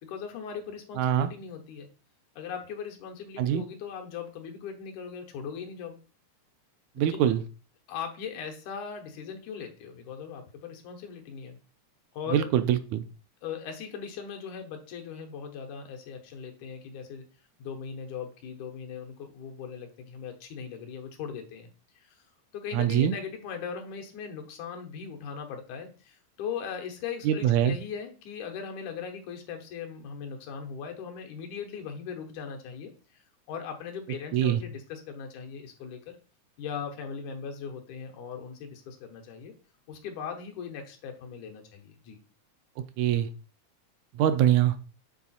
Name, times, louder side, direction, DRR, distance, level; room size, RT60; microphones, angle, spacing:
voice 1, 0.0-1.9 2.4-6.0 7.1-7.2 7.9-11.6 12.1-12.5 13.4-17.3 17.6-21.7 22.0-22.2 22.5-32.9 33.5-36.2 36.6-39.5 39.9-42.2, left 7 dB, 85° left, 4 dB, 2.5 m, -39 dB
voice 2, 1.0-1.3 3.4-3.6 7.0-7.4 12.3-13.0 22.7-23.1 27.3-27.8 34.3-34.6 43.0-43.3 44.2-44.8, right 10 dB, 80° right, 11 dB, 1.9 m, -23 dB
7.2 x 3.9 x 4.3 m, 0.36 s
omnidirectional pair, 3.4 m